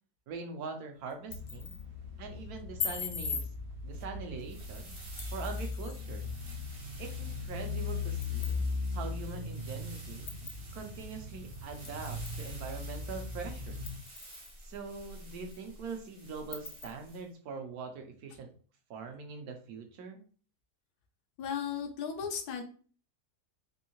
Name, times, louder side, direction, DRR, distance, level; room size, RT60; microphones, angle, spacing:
voice 1, 0.3-1.8 2.2-3.5 3.8-4.9 5.3-6.3 7.0-8.7 8.9-10.3 10.7-13.8 14.6-18.5 18.9-20.2, right 4 dB, 80° right, 5 dB, 1.2 m, -42 dB
sound 1, 1.1-1.8 2.8-3.5 5.2-6.0 7.5-7.6 8.2-8.6 9.2-9.3 10.3-10.6 11.8-12.5 12.9-13.0 13.9-14.5 15.0-15.1 15.5-15.6 16.5-16.9, left 5 dB, 50° left, 0.6 m, -39 dB
sound 2, 1.3-14.0, left 4 dB, 55° right, 0.8 m, -39 dB
sound 3, 4.4-17.2, right 1 dB, 40° right, 0.4 m, -51 dB
voice 2, 21.4-22.6, left 7 dB, 90° left, 5 dB, 1.2 m, -35 dB
3.5 x 2.7 x 2.9 m, 0.42 s
omnidirectional pair, 1.6 m